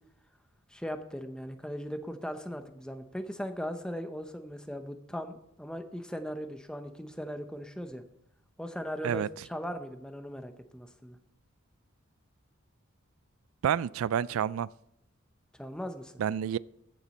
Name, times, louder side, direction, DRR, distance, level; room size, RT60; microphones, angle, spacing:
voice 1, 0.7-8.0 8.6-11.2 15.6-16.1, equal, 5° left, 0.7 m, -38 dB
voice 2, 13.6-14.7 16.2-16.6, right 8 dB, 80° right, 0.3 m, -28 dB
14.5 x 7.3 x 4.1 m
head